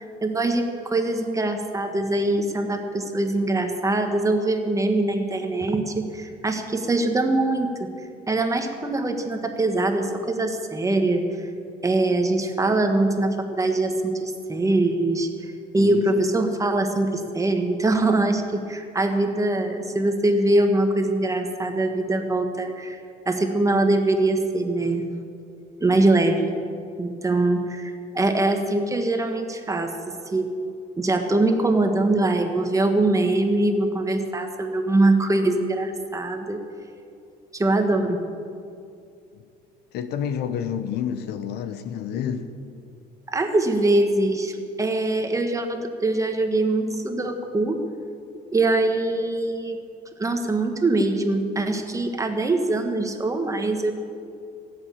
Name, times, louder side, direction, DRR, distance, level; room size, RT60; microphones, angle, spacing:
voice 1, 0.0-7.9 8.3-11.5 11.8-15.3 15.7-23.0 23.2-25.1 25.8-26.5 27.0-30.5 31.0-36.6 37.5-38.2 43.3-47.8 48.5-49.8 50.2-53.9, right 2 dB, 20° right, 5 dB, 1.5 m, -23 dB
voice 2, 39.9-42.5, left 8 dB, 75° left, 10 dB, 1.0 m, -29 dB
16.5 x 8.2 x 8.6 m, 2.4 s
cardioid pair, 110°, 17 cm